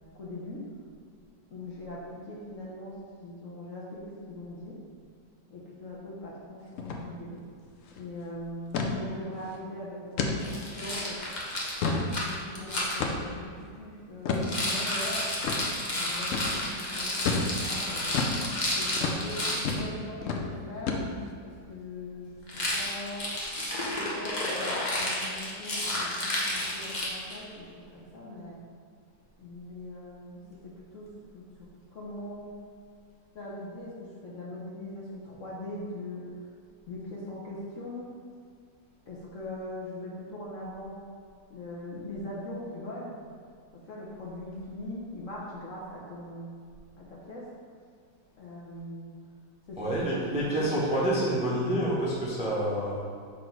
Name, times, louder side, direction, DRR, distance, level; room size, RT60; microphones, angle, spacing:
voice 1, 0.1-0.7 1.5-4.8 5.5-7.4 7.9-11.2 12.2-15.3 15.9-18.3 18.7-21.0 21.4-23.4 23.9-28.6 29.4-32.6 33.3-36.3 36.9-38.1 39.1-41.0 41.5-43.1 43.8-46.5 47.0-47.5 48.4-49.2 49.7-49.8 50.4-50.7, left 1 dB, 55° left, -5 dB, 1.0 m, -41 dB
sound 1, 6.8-7.0 7.3-7.4 7.8-8.0 8.7-8.9 9.4-9.6 10.2-10.4 10.9-11.0 11.5-12.1 13.0-13.4 14.3-14.5 15.4-15.6 16.3-16.5 17.3-17.5 18.1-18.4 19.0-19.2 19.7-19.9 20.2-20.4 20.9-21.3, left 4 dB, 75° left, 0.7 m, -29 dB
Rattle, 10.4-13.0 14.3-19.7 22.5-27.4, left 1 dB, 35° left, 0.7 m, -31 dB
voice 2, 49.8-53.1, right 1 dB, 5° right, -6 dB, 0.6 m, -28 dB
5.9 x 3.7 x 4.5 m, 2.2 s
omnidirectional pair, 2.0 m